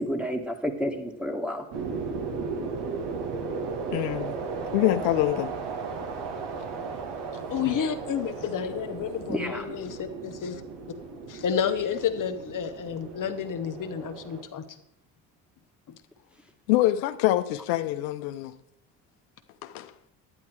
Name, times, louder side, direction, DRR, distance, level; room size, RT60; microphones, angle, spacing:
voice 1, 0.0-1.6 9.3-9.6, equal, ahead, 5 dB, 1.7 m, -30 dB
sound 1, 1.7-14.4, right 4 dB, 65° right, 1.9 m, -35 dB
voice 2, 3.9-4.3 4.7-5.5 7.6-7.8 16.7-18.5 19.6-19.9, left 15 dB, 75° left, 9 dB, 0.7 m, -25 dB
voice 3, 7.5-10.6 11.3-14.6, left 8 dB, 45° left, 7 dB, 1.0 m, -30 dB
11.0 x 9.8 x 4.6 m, 0.82 s
hypercardioid pair, 65°, 45 cm